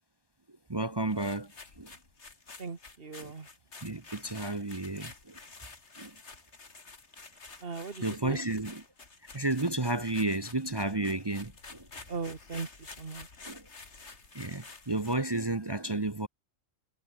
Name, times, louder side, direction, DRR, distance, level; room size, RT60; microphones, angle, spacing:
voice 1, 0.7-1.5 1.8-1.9 3.2-3.3 3.8-5.1 6.0-6.1 8.0-8.8 9.3-11.8 13.5-13.6 14.3-16.3, right 2 dB, 20° right, 0.9 m, -32 dB
sound 1, 1.1-15.3, left 4 dB, 60° left, 2.8 m, -50 dB
voice 2, 2.6-3.5 7.6-8.4 12.1-13.3, right 4 dB, 45° right, 2.0 m, -39 dB
omnidirectional pair, 1.3 m